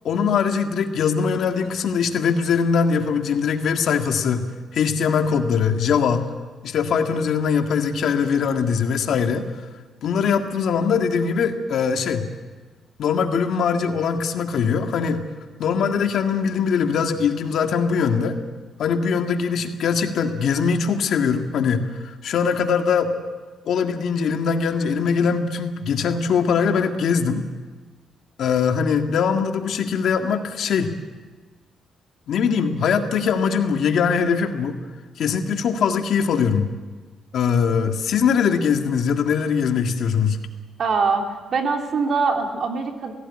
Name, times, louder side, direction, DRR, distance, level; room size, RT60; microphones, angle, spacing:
voice 1, 0.0-4.5 4.7-6.2 6.6-9.5 10.0-12.3 13.0-15.2 15.6-18.4 18.8-23.1 23.7-27.4 28.4-30.9 32.3-34.8 35.2-36.7 37.3-40.4, left 6 dB, 70° left, 5 dB, 1.8 m, -21 dB
voice 2, 40.8-41.2 41.5-43.1, right 4 dB, 55° right, 3 dB, 3.2 m, -22 dB
18.0 x 17.0 x 9.8 m, 1.3 s
cardioid pair, 110°, 0 cm